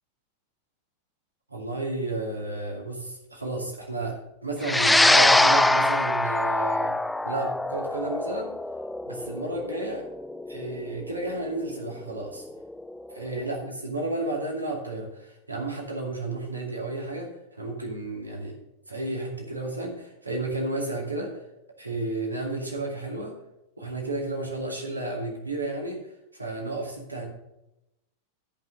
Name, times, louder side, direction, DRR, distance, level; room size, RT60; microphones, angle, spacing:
voice 1, 1.5-7.0 7.2-8.5 9.1-10.1 10.5-12.4 13.1-18.5 18.9-21.4 21.8-23.3 23.8-26.1 26.3-27.3, right 2 dB, 80° right, 0 dB, 2.5 m, -32 dB
sound 1, 4.6-13.2, left 1 dB, 5° left, 0.4 m, -24 dB
13.5 x 5.7 x 6.6 m, 0.90 s
figure-of-eight pair, 90°, 0 cm